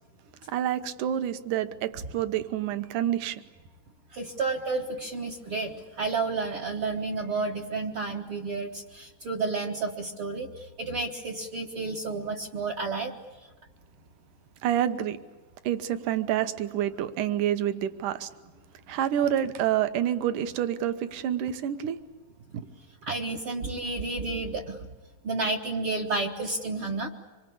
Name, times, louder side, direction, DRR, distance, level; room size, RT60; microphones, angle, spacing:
voice 1, 0.5-3.4 14.6-15.2 15.7-18.3 18.9-22.0 22.5-22.6, right 11 dB, 65° right, 11 dB, 2.4 m, -28 dB
voice 2, 4.1-13.1 23.0-24.8 25.2-27.1, right 3 dB, 50° right, 2 dB, 1.7 m, -31 dB
26.0 x 23.5 x 8.6 m, 1.2 s
omnidirectional pair, 4.2 m